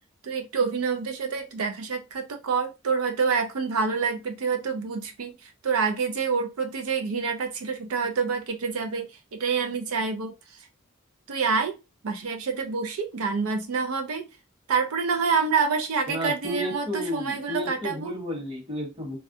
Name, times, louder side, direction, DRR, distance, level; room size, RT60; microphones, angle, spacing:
voice 1, 0.2-10.6 11.3-11.8 12.0-14.3 14.7-18.2, right 5 dB, 85° right, 0.5 m, -27 dB
voice 2, 16.1-19.2, equal, 25° right, 1.0 m, -32 dB
3.2 x 2.3 x 2.6 m
head